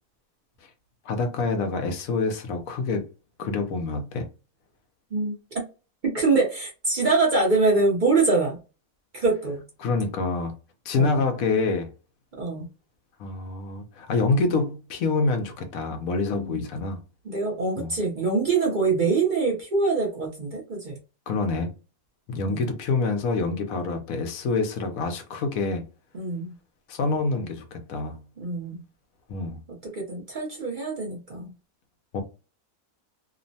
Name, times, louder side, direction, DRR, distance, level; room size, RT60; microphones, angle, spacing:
voice 1, 1.0-3.1 3.4-4.3 9.8-10.6 10.9-11.9 13.2-17.0 17.8-17.9 21.3-21.7 22.3-25.9 26.9-28.2 29.3-29.6 32.1-32.2, left 3 dB, 75° left, 1.0 m, -26 dB
voice 2, 5.1-5.6 6.0-8.6 9.1-9.6 11.0-11.2 12.4-12.7 16.3-16.6 17.3-21.0 22.5-22.7 26.1-26.5 28.4-28.8 29.8-31.5, right 3 dB, 45° right, 0.7 m, -24 dB
2.9 x 2.1 x 2.6 m
omnidirectional pair, 1.5 m